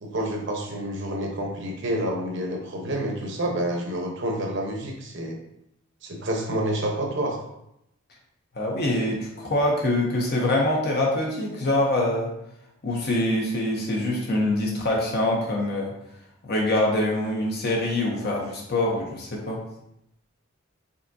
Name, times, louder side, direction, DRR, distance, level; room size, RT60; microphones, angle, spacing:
voice 1, 0.0-5.4 6.0-7.4, right 1 dB, 55° right, 1 dB, 0.9 m, -28 dB
voice 2, 8.5-12.3 12.8-15.9 16.4-19.6, left 1 dB, 45° left, -1 dB, 0.7 m, -24 dB
5.4 x 3.4 x 2.7 m, 0.80 s
head